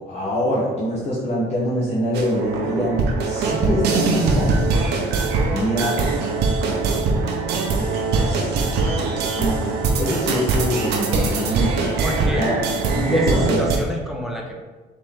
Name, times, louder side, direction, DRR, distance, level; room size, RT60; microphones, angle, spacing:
voice 1, 0.0-4.5 5.4-6.0 7.7-9.6 10.0-11.7 12.4-12.5 12.9-13.6, equal, 40° left, -7 dB, 1.0 m, -24 dB
sound 1, 2.1-13.8, right 4 dB, 80° right, 0.7 m, -22 dB
voice 2, 12.0-12.5 13.1-14.6, equal, ahead, -1 dB, 0.7 m, -29 dB
4.2 x 3.0 x 3.6 m, 1.3 s
cardioid pair, 110°, 17 cm